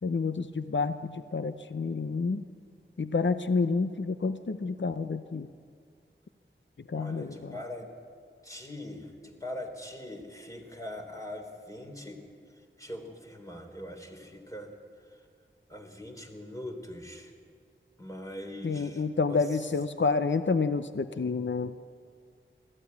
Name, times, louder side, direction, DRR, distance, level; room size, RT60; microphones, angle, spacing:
voice 1, 0.0-2.4 3.0-5.5 6.8-7.5 18.6-21.7, left 4 dB, 65° left, 11 dB, 0.7 m, -29 dB
voice 2, 6.9-7.9 8.4-12.2 12.8-14.7 15.1-15.2 15.7-17.3 18.0-19.4, left 1 dB, 15° left, 2 dB, 3.4 m, -42 dB
19.0 x 14.5 x 9.7 m, 2.1 s
wide cardioid pair, 45°, 21 cm